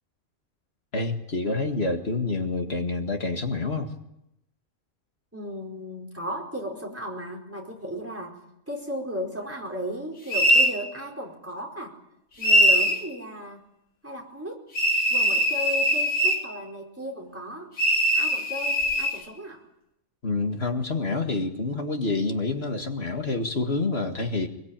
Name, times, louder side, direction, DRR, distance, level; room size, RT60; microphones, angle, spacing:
voice 1, 0.9-3.9 20.2-24.5, left 3 dB, 50° left, 4 dB, 2.3 m, -27 dB
voice 2, 5.3-8.4 8.7-12.0 12.4-13.7 14.0-14.7 15.1-17.7 18.1-19.6, equal, 10° right, 1 dB, 4.6 m, -35 dB
sound 1, 10.3-10.8 12.4-13.0 14.8-16.5 17.8-19.2, equal, 80° left, 3.1 m, -21 dB
23.0 x 21.5 x 9.0 m, 0.84 s
omnidirectional pair, 1.4 m